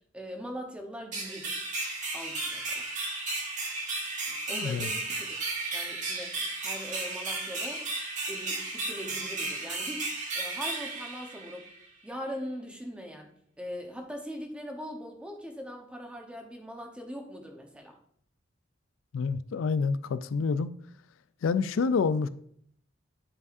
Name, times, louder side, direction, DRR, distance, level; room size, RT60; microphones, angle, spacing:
voice 1, 0.1-1.7 2.1-2.9 4.3-5.4 5.7-6.4 6.6-7.9 8.3-11.7 12.0-13.3 13.6-18.0, equal, 5° right, 1.0 m, -41 dB
sound 1, 1.1-11.8, right 2 dB, 40° right, 1.4 m, -34 dB
voice 2, 4.5-4.9 19.1-20.7 21.4-22.3, left 5 dB, 85° left, 0.4 m, -27 dB
11.0 x 4.8 x 2.6 m
head